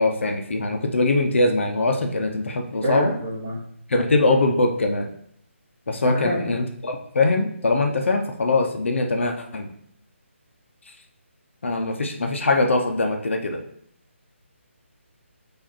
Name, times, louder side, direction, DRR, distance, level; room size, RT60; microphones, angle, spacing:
voice 1, 0.0-3.1 3.9-5.1 5.9-9.7 11.6-13.6, left 2 dB, 65° left, 3 dB, 0.6 m, -22 dB
voice 2, 2.8-3.5 6.0-6.5, equal, 20° right, -5 dB, 1.1 m, -26 dB
4.8 x 2.5 x 4.3 m, 0.69 s
hypercardioid pair, 170°, 7 cm